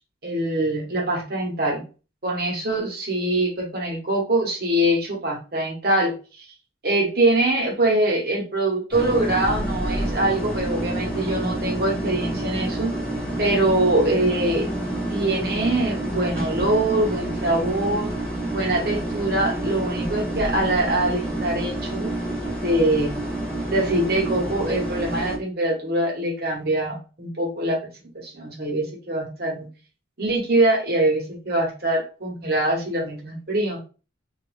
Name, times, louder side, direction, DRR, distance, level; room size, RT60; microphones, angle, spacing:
voice 1, 0.2-1.8 2.2-6.5 6.8-12.9 13.4-14.7 15.1-18.1 18.5-22.1 22.6-23.2 23.7-29.7 30.2-33.8, right 1 dB, 50° right, 0 dB, 1.0 m, -23 dB
sound 1, 8.9-25.4, right 1 dB, 5° left, 0.8 m, -28 dB
2.4 x 2.2 x 3.2 m, 0.34 s
head